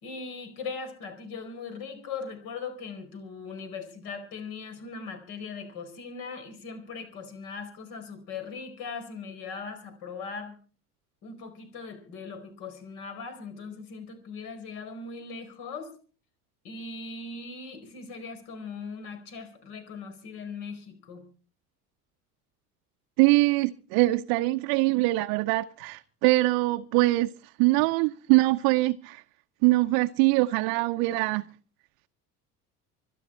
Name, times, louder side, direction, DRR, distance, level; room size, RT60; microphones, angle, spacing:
voice 1, 0.0-10.6 11.2-15.9 16.6-21.2, left 4 dB, 55° left, 4.7 m, -39 dB
voice 2, 23.2-29.2 29.6-31.5, right 21 dB, 50° right, 0.7 m, -23 dB
25.0 x 10.5 x 4.4 m
figure-of-eight pair, 65°, 46 cm